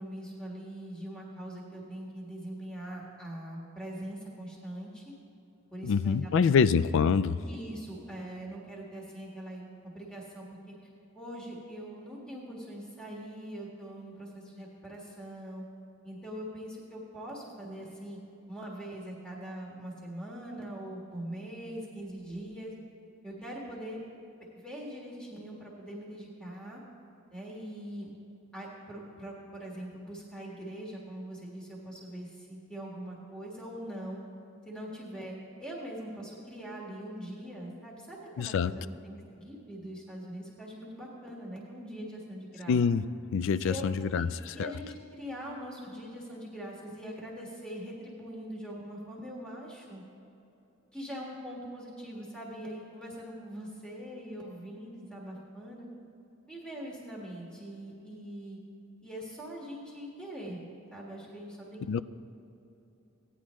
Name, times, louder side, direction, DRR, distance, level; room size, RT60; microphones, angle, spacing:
voice 1, 0.0-5.1 5.7-6.6 7.4-9.7 9.9-10.7 11.1-15.6 16.0-18.2 18.5-22.7 23.2-24.0 24.5-26.8 27.3-28.1 28.5-34.2 34.6-42.8 43.6-43.9 44.1-44.3 44.5-50.0 50.9-55.9 56.5-58.6 59.0-60.6 60.9-62.0, right 1 dB, 5° left, -4 dB, 1.6 m, -42 dB
voice 2, 5.8-7.4 38.4-38.7 42.7-43.0 43.3-44.7 61.9-62.0, left 6 dB, 65° left, 17 dB, 0.3 m, -26 dB
16.5 x 9.9 x 3.1 m, 2.9 s
head